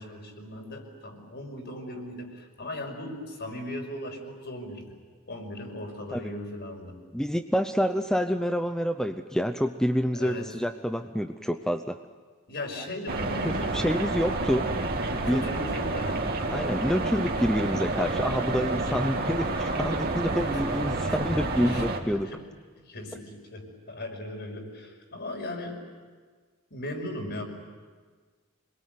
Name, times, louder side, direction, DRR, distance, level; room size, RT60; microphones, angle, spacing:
voice 1, 0.0-4.8 5.3-7.0 10.1-10.5 12.5-14.1 15.2-16.2 20.5-20.6 21.0-21.9 22.2-22.4 22.8-25.8 26.7-27.4, left 1 dB, 55° left, 2 dB, 5.7 m, -38 dB
voice 2, 7.1-12.0 13.4-14.7 15.2-15.4 16.5-22.3, equal, 5° left, 7 dB, 0.7 m, -28 dB
sound 1, 13.1-22.0, right 2 dB, 45° right, 2.8 m, -29 dB
27.0 x 22.0 x 9.4 m, 1.5 s
head